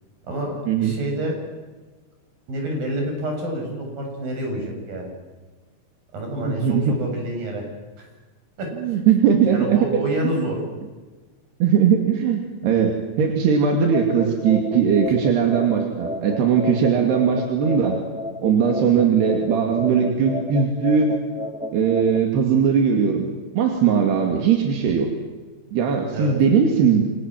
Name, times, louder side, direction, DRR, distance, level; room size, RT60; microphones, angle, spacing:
voice 1, 0.3-1.4 2.5-5.1 6.1-7.6 8.0-8.1 8.6-9.0 9.5-10.6 26.1-26.4, right 1 dB, 60° right, 2 dB, 9.2 m, -28 dB
voice 2, 6.4-6.9 8.8-9.9 10.2-10.4 11.6-18.0 18.4-21.1 21.7-23.3 23.5-25.1 25.7-27.0, right 7 dB, 85° right, 3 dB, 4.6 m, -19 dB
sound 1, 13.9-22.2, left 1 dB, 5° right, 0.7 m, -32 dB
28.5 x 25.0 x 7.6 m, 1.3 s
omnidirectional pair, 4.6 m